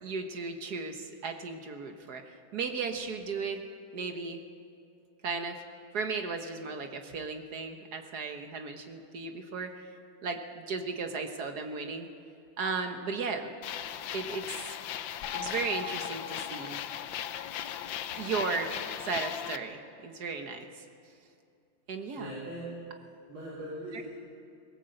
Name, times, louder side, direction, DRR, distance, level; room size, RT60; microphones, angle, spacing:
voice 1, 0.0-3.6 3.9-4.4 5.2-5.6 5.9-9.7 10.2-12.1 12.6-13.5 14.1-14.8 15.3-16.8 18.2-18.7 19.0-20.8 21.9-22.3, right 4 dB, 50° right, 6 dB, 1.6 m, -35 dB
sound 1, 13.6-19.6, left 10 dB, 70° left, 1.4 m, -37 dB
voice 2, 22.1-22.7 23.3-24.1, right 1 dB, 70° right, -9 dB, 5.4 m, -40 dB
20.0 x 17.5 x 7.9 m, 2.5 s
omnidirectional pair, 2.3 m